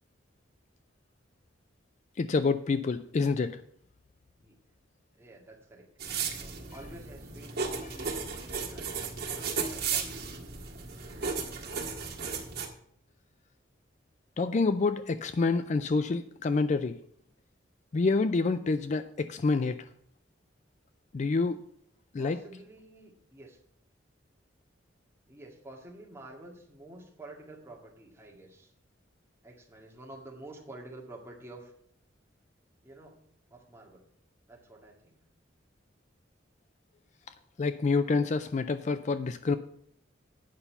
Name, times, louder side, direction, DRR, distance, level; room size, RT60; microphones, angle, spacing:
voice 1, 2.2-3.6 14.4-17.0 17.9-19.8 21.1-21.6 22.1-22.4 37.6-39.6, left 4 dB, 40° left, 12 dB, 0.4 m, -27 dB
voice 2, 5.1-10.4 10.9-11.5 22.2-23.6 25.3-28.7 29.4-31.7 32.8-34.1 34.5-35.2, right 1 dB, 15° right, -2 dB, 1.9 m, -50 dB
sound 1, 6.0-12.7, right 5 dB, 55° right, 1.7 m, -35 dB
9.0 x 5.6 x 7.0 m, 0.66 s
head